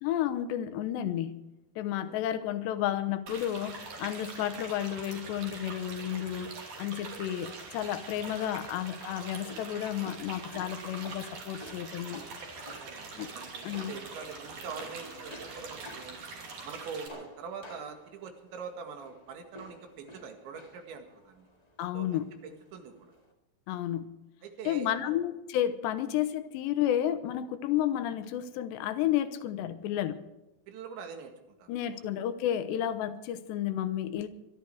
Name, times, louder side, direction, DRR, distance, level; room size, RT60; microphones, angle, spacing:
voice 1, 0.0-1.5 1.8-12.2 13.2-13.3 13.6-13.9 21.8-22.3 23.7-24.2 24.7-30.3 31.7-34.3, left 11 dB, 80° left, 3.1 m, -32 dB
sound 1, 3.3-17.1, right 4 dB, 50° right, 3.9 m, -44 dB
sound 2, 9.0-23.3, left 1 dB, 30° left, 0.7 m, -52 dB
voice 2, 12.7-16.2 16.6-21.5 21.9-23.1 24.4-25.2 26.0-26.1 30.7-32.1, right 5 dB, 85° right, 4.3 m, -44 dB
23.5 x 12.0 x 4.8 m
omnidirectional pair, 5.1 m